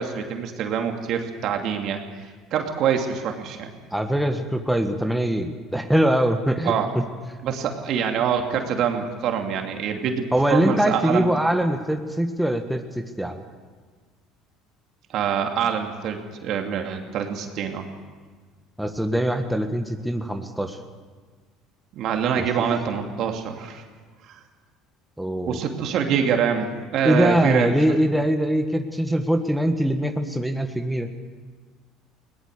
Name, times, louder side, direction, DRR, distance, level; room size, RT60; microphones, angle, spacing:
voice 1, 0.0-2.0 2.5-3.7 6.6-6.9 7.4-11.3 15.1-17.9 21.9-23.8 24.3-24.4 25.5-27.7, right 7 dB, 60° right, 4 dB, 2.6 m, -25 dB
voice 2, 3.9-7.0 10.3-13.4 18.8-20.8 22.4-22.5 25.2-25.6 27.0-31.1, equal, 5° right, 5 dB, 1.6 m, -23 dB
21.0 x 18.5 x 6.7 m, 1.5 s
hypercardioid pair, 75°, 0 cm